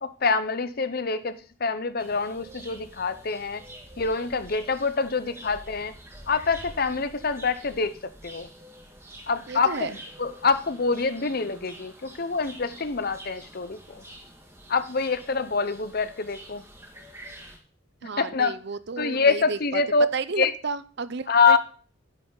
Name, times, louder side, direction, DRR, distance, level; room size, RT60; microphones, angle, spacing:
voice 1, 0.0-3.6 4.0-5.9 6.3-8.0 8.2-8.5 9.3-14.0 14.7-16.6 18.2-18.5 19.0-20.1 20.4-20.5 21.3-21.6, left 4 dB, 45° left, 12 dB, 0.8 m, -25 dB
sound 1, 2.0-17.6, right 1 dB, 15° right, 1.9 m, -47 dB
voice 2, 9.5-9.9 18.0-19.8 20.1-21.6, right 4 dB, 55° right, 15 dB, 0.6 m, -32 dB
11.5 x 10.0 x 4.0 m, 0.41 s
head